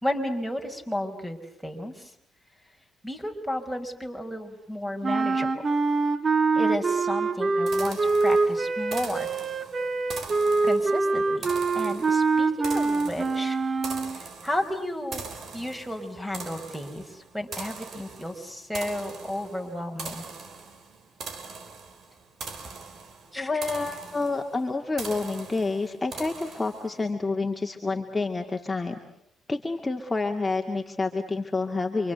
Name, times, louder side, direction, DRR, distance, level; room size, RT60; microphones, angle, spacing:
voice 1, 0.0-2.1 3.0-5.5 6.5-9.4 10.6-13.6 14.1-15.3 15.5-20.3 23.3-23.6, left 1 dB, 5° right, 6 dB, 5.1 m, -33 dB
sound 1, 5.0-14.2, right 3 dB, 35° right, 2.0 m, -24 dB
sound 2, 7.7-27.0, right 4 dB, 55° right, 3.5 m, -42 dB
voice 2, 23.4-29.0 29.5-32.1, left 3 dB, 20° left, 2 dB, 2.3 m, -28 dB
28.5 x 25.5 x 8.1 m, 0.75 s
cardioid pair, 90°, 0 cm